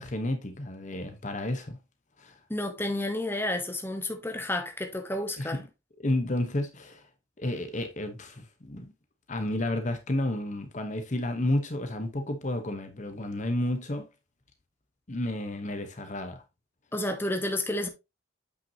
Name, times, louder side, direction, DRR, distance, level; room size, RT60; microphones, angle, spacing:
voice 1, 0.0-1.8 2.2-2.4 5.4-5.7 6.0-7.1 7.4-8.9 9.3-14.1 15.1-16.4, left 1 dB, 35° left, 0.9 m, -31 dB
voice 2, 2.5-5.6 16.9-17.9, left 1 dB, 10° left, 1.0 m, -31 dB
8.2 x 5.9 x 2.8 m
head